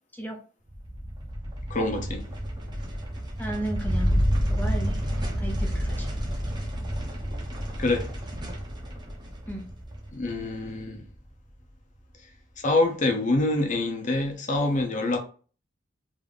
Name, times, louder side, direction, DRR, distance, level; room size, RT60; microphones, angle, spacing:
sound 1, 0.7-11.3, equal, 20° right, 1.0 m, -30 dB
voice 1, 1.7-2.2 7.8-8.1 10.1-11.0 12.6-15.2, left 2 dB, 40° left, 0.9 m, -25 dB
voice 2, 3.4-5.0 5.4-6.1 9.5-9.6, right 1 dB, 10° left, 0.7 m, -34 dB
3.7 x 2.9 x 3.5 m
head